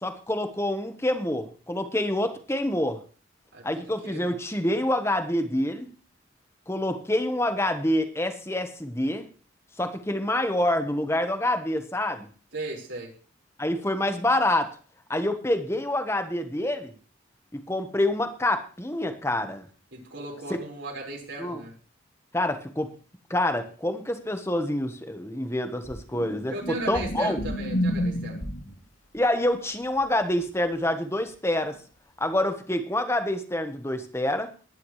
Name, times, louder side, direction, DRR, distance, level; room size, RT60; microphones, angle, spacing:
voice 1, 0.0-3.0 3.6-5.9 6.7-9.3 9.8-12.3 13.6-14.7 15.1-16.9 17.5-19.6 20.5-20.6 21.4-21.6 22.3-22.9 23.3-27.4 29.1-31.8 32.2-34.5, left 1 dB, 15° left, 7 dB, 1.2 m, -27 dB
voice 2, 3.5-4.3 12.5-13.1 19.9-21.7 26.5-28.4, right 2 dB, 70° right, -2 dB, 5.0 m, -37 dB
sound 1, 25.9-28.8 31.6-31.8, equal, 85° left, 3.0 m, -30 dB
20.0 x 10.5 x 3.2 m, 0.39 s
head